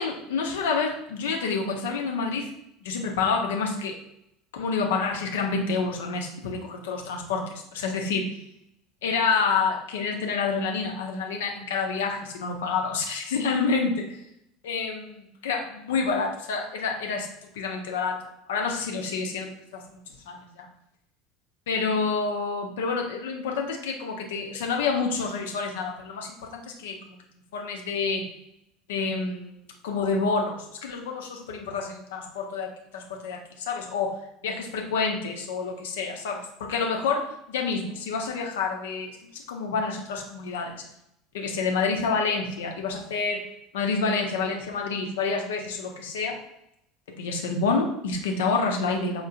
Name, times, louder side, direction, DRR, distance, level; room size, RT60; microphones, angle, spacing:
voice 1, 0.0-2.5 2.8-4.0 4.5-8.4 9.0-14.2 14.6-17.3 17.5-18.2 18.5-20.7 21.7-27.2 27.5-28.3 28.9-29.6 29.8-34.1 34.4-40.8 41.3-43.5 43.7-46.4 47.2-49.3, left 4 dB, 65° left, 2 dB, 0.5 m, -28 dB
4.3 x 2.1 x 2.4 m, 0.80 s
figure-of-eight pair, 70°, 0 cm